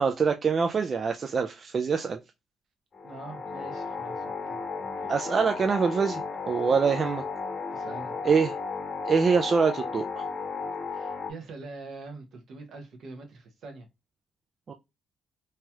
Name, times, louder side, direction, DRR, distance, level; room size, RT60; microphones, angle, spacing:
voice 1, 0.0-2.2 5.1-7.2 8.2-8.6 9.1-10.2 14.7-14.8, right 5 dB, 45° right, 0.3 m, -25 dB
sound 1, 2.9-11.3, left 4 dB, 45° left, 0.8 m, -34 dB
voice 2, 3.0-4.6 5.0-5.1 7.7-8.1 10.9-13.9, right 3 dB, 65° right, 1.0 m, -44 dB
3.1 x 2.9 x 2.2 m
cardioid pair, 90°, 0 cm